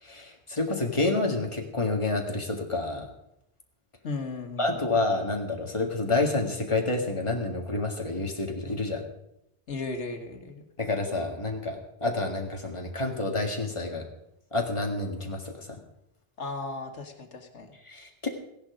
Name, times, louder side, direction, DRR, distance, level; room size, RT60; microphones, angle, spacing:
voice 1, 0.0-3.1 4.6-9.0 10.8-14.0 14.5-15.8 17.8-18.3, left 2 dB, 25° left, 2 dB, 2.0 m, -29 dB
voice 2, 4.0-4.8 9.7-10.6 16.4-17.7, left 3 dB, 80° left, 5 dB, 1.8 m, -36 dB
16.0 x 10.5 x 5.0 m, 0.81 s
omnidirectional pair, 1.2 m